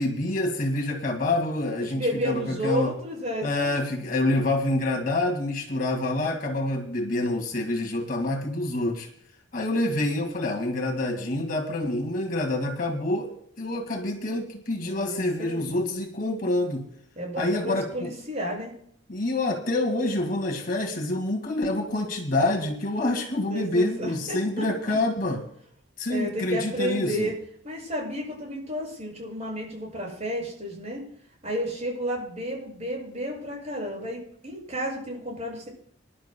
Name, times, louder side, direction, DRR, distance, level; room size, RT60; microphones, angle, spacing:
voice 1, 0.0-2.9 3.4-9.1 9.5-13.3 13.6-16.8 17.4-18.1 19.1-25.4 26.0-27.3, left 2 dB, 45° left, 1 dB, 2.0 m, -27 dB
voice 2, 1.9-3.9 14.8-15.8 17.1-18.7 23.5-24.7 26.1-27.3 27.6-31.0 31.4-35.7, equal, 35° right, -2 dB, 6.6 m, -32 dB
26.0 x 11.5 x 2.2 m, 0.64 s
head